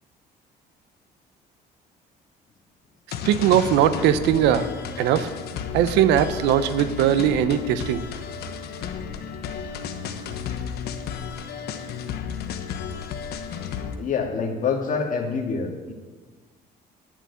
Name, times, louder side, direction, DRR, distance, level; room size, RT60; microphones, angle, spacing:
sound 1, 3.1-14.0, left 7 dB, 70° left, 1.2 m, -33 dB
voice 1, 3.3-4.7 5.0-5.3 5.7-8.0, right 10 dB, 90° right, 13 dB, 0.7 m, -20 dB
voice 2, 14.0-15.9, left 5 dB, 50° left, 1 dB, 2.2 m, -26 dB
11.0 x 7.3 x 8.3 m, 1.4 s
cardioid pair, 110°, 17 cm